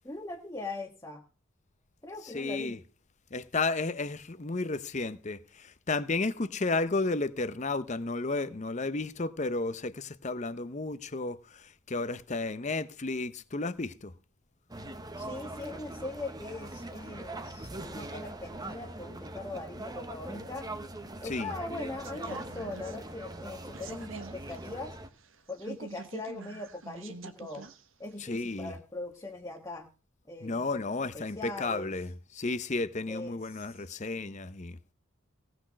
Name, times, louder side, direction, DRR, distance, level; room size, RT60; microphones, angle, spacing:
voice 1, 0.0-1.2 2.0-2.8 15.2-20.7 21.2-25.0 25.5-27.7 28.0-29.9 30.3-30.7 31.1-31.9 33.1-33.9, left 2 dB, 15° left, 1.4 m, -41 dB
voice 2, 2.2-2.8 3.3-14.1 21.2-21.5 28.2-28.7 30.4-34.8, left 3 dB, 35° left, 0.7 m, -33 dB
sound 1, 14.7-25.1, right 1 dB, 20° right, 1.0 m, -42 dB
sound 2, 22.0-27.8 28.1-28.2, right 3 dB, 65° right, 1.3 m, -46 dB
17.5 x 6.1 x 6.3 m
head